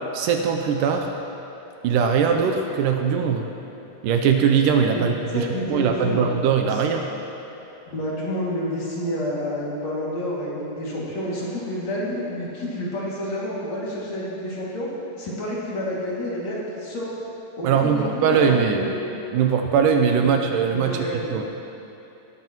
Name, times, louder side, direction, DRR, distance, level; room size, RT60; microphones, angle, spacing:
voice 1, 0.1-1.1 1.8-3.5 4.0-7.1 17.6-18.8 19.3-21.0 21.3-21.4, right 6 dB, 80° right, 4 dB, 2.2 m, -21 dB
voice 2, 5.3-6.3 6.7-6.8 7.9-14.9 15.2-17.1 17.6-19.0 20.2-20.3 20.7-21.4, equal, 50° left, -7 dB, 3.5 m, -29 dB
18.0 x 13.5 x 3.0 m, 2.9 s
omnidirectional pair, 4.0 m